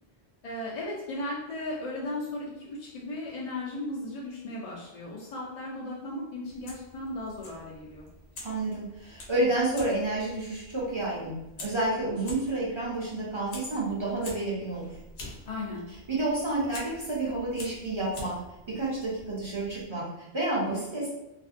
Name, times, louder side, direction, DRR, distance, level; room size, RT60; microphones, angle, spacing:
voice 1, 0.4-8.1 15.5-15.8, left 2 dB, 50° left, -5 dB, 0.5 m, -36 dB
Fire, 6.5-19.9, left 1 dB, 90° left, 0.9 m, -47 dB
voice 2, 8.4-15.0 16.1-18.3 18.7-21.1, right 2 dB, 35° right, -6 dB, 0.5 m, -30 dB
2.5 x 2.1 x 2.4 m, 0.91 s
omnidirectional pair, 1.1 m